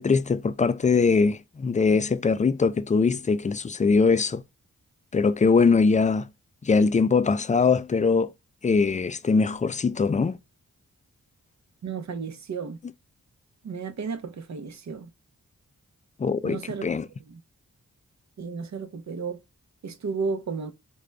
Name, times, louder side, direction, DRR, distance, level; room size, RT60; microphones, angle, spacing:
voice 1, 0.0-4.4 5.1-6.3 6.6-8.3 8.6-10.4 16.2-17.1, left 4 dB, 25° left, 0.4 m, -22 dB
voice 2, 11.8-12.8 13.6-15.1 16.4-16.8 17.3-17.4 18.4-19.4 19.8-20.7, right 5 dB, 55° right, 0.7 m, -33 dB
3.7 x 2.2 x 3.1 m
cardioid pair, 55°, 33 cm